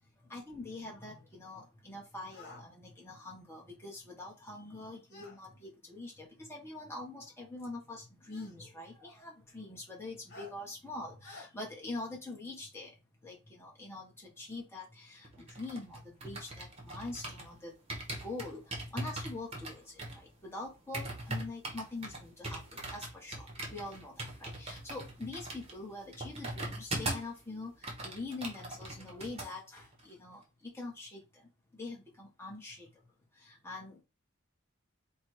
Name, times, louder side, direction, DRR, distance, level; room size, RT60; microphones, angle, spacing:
voice 1, 0.3-12.9 13.2-17.7 18.2-18.6 18.9-19.8 20.1-22.6 22.9-23.4 23.7-27.7 28.0-31.2 31.7-32.9 33.4-34.0, left 2 dB, 10° left, -2 dB, 1.6 m, -44 dB
sound 1, 2.3-2.7 5.1-5.4 6.6-6.7 8.3-8.6 10.3-10.5 11.2-11.5, left 3 dB, 55° left, 1.7 m, -50 dB
sound 2, 15.2-17.5 17.9-27.4 27.7-29.5 29.8-30.0, right 1 dB, 30° right, 1.2 m, -41 dB
4.0 x 2.6 x 4.7 m, 0.28 s
head